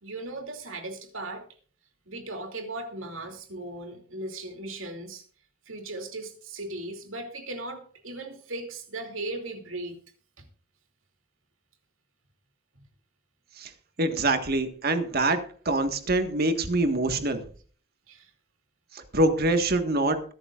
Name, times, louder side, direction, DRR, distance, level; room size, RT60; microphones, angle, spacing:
voice 1, 0.0-1.5 2.1-5.2 5.7-10.0 10.4-10.5 14.2-14.3 18.1-18.3, right 2 dB, 70° right, 5 dB, 2.8 m, -37 dB
voice 2, 14.0-17.4 18.9-20.2, right 2 dB, 50° right, 7 dB, 1.7 m, -25 dB
22.0 x 11.0 x 2.5 m, 0.42 s
head